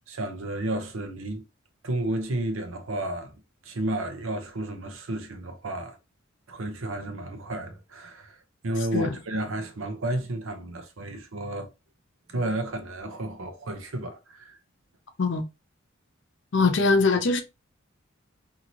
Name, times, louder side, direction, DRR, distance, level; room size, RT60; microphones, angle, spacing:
voice 1, 0.1-1.4 1.8-3.3 3.6-6.0 6.5-8.4 8.6-11.7 12.3-14.6, right 1 dB, 80° right, 0.7 m, -32 dB
voice 2, 16.5-17.4, left 3 dB, 65° left, 0.6 m, -22 dB
2.8 x 2.7 x 2.8 m
head